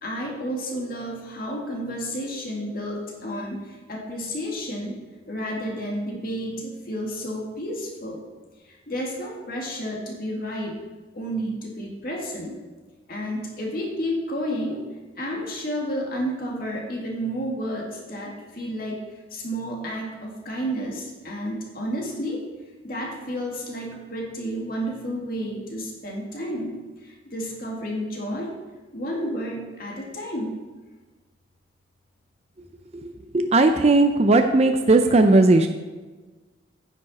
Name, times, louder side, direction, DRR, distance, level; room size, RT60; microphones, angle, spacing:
voice 1, 0.0-5.0 5.3-8.2 8.7-10.8 11.1-12.5 13.1-14.8 15.2-19.0 19.3-22.4 22.8-28.5 28.9-30.6, equal, 50° left, -1 dB, 2.0 m, -31 dB
voice 2, 33.0-35.7, right 2 dB, 35° right, 6 dB, 0.5 m, -17 dB
9.8 x 8.9 x 4.1 m, 1.3 s
head